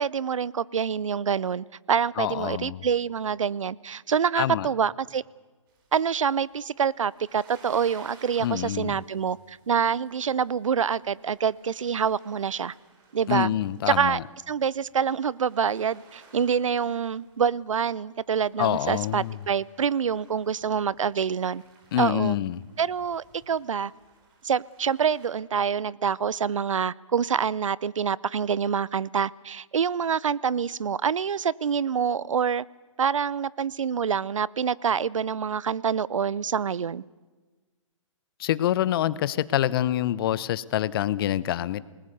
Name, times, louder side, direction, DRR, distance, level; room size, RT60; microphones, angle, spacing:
voice 1, 0.0-5.2 5.9-12.7 13.1-13.5 13.9-14.2 14.5-21.6 22.0-22.4 22.8-23.9 24.4-32.6 33.0-37.0, right 7 dB, 75° right, 23 dB, 0.7 m, -26 dB
voice 2, 2.2-2.9 4.4-4.7 8.4-9.0 13.3-14.2 18.6-19.4 21.9-22.6 38.4-41.9, left 12 dB, 45° left, 19 dB, 0.9 m, -26 dB
sound 1, 5.7-25.3, right 4 dB, 45° right, 6.3 m, -58 dB
28.0 x 20.0 x 6.8 m, 1.3 s
figure-of-eight pair, 130°, 17 cm